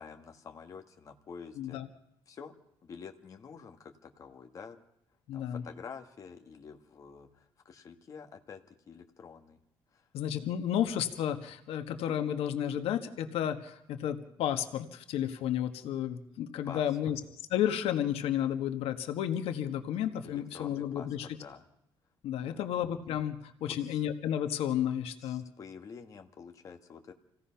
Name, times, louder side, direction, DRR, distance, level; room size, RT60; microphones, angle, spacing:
voice 1, 0.0-1.8 2.3-2.5 2.8-4.8 5.3-9.6 9.9-10.1 16.6-16.9 20.2-21.6 22.4-22.7 23.7-24.0 25.2-27.1, left 6 dB, 35° left, 5 dB, 1.5 m, -48 dB
voice 2, 1.6-1.9 5.3-5.6 10.1-17.2 17.5-21.3 22.2-25.4, left 10 dB, 85° left, 7 dB, 1.6 m, -32 dB
27.0 x 17.0 x 5.8 m, 0.82 s
cardioid pair, 175°, 10 cm